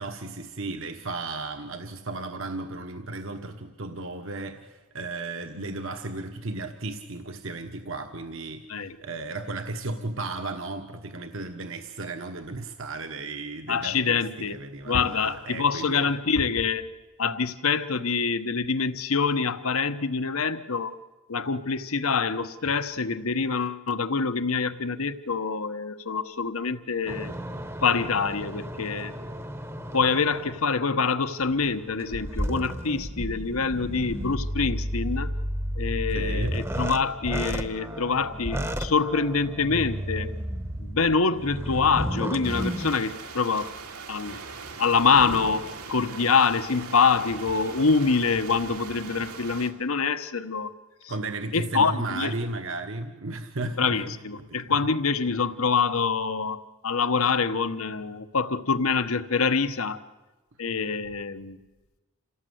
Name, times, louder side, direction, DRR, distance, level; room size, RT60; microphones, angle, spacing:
voice 1, 0.0-16.1 36.1-36.6 51.1-54.2 54.5-54.8, right 2 dB, 60° right, 6 dB, 1.2 m, -35 dB
voice 2, 13.7-14.6 14.9-16.9 17.2-21.0 21.3-27.3 27.8-29.1 29.9-35.3 35.8-40.3 40.8-43.7 44.1-44.4 44.8-50.7 51.5-52.3 53.8-60.0 60.6-61.6, left 5 dB, 70° left, 12 dB, 1.1 m, -25 dB
sound 1, 27.1-30.8 31.4-43.0, equal, 10° right, 0.9 m, -32 dB
sound 2, 42.4-49.7, right 4 dB, 85° right, 2.4 m, -40 dB
28.0 x 17.0 x 7.9 m, 1.2 s
head